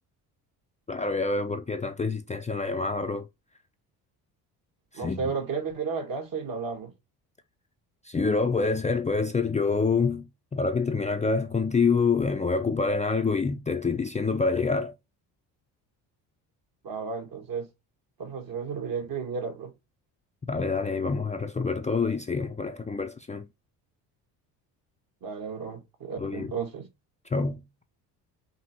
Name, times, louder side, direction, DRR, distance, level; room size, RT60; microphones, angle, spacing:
voice 1, 0.9-3.3 4.9-5.2 8.0-14.9 20.5-23.5 26.2-26.5 27.3-27.6, left 4 dB, 15° left, 0.5 m, -27 dB
voice 2, 4.9-6.9 16.8-17.7 18.2-19.7 25.2-26.9, right 5 dB, 50° right, 1.6 m, -33 dB
5.8 x 2.7 x 2.9 m
supercardioid pair, 70°, 45 cm